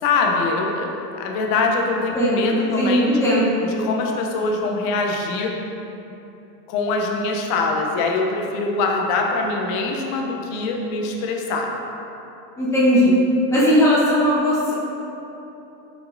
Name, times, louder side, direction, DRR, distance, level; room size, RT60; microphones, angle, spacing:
voice 1, 0.0-3.2 3.6-5.5 6.7-11.7, left 3 dB, 50° left, 1 dB, 0.7 m, -23 dB
voice 2, 2.1-3.5 12.6-13.1 13.5-14.7, equal, 5° left, -8 dB, 0.9 m, -18 dB
4.6 x 4.2 x 2.5 m, 3.0 s
hypercardioid pair, 105°, 49 cm